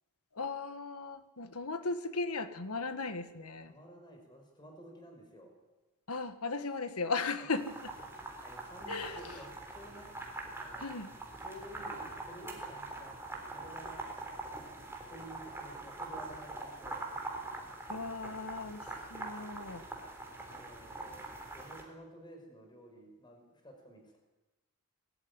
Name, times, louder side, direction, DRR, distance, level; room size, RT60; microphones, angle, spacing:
voice 1, 0.4-3.7 6.1-7.9 8.9-9.3 10.8-11.1 17.9-19.8, left 3 dB, 90° left, 10 dB, 1.6 m, -37 dB
voice 2, 3.6-5.5 8.4-10.1 10.6-10.8 11.4-14.0 14.6-17.1 20.4-21.3 21.5-24.2, equal, 20° left, 2 dB, 5.4 m, -52 dB
sound 1, 7.6-21.8, right 2 dB, 10° right, 3.5 m, -43 dB
21.0 x 13.5 x 9.7 m, 1.1 s
head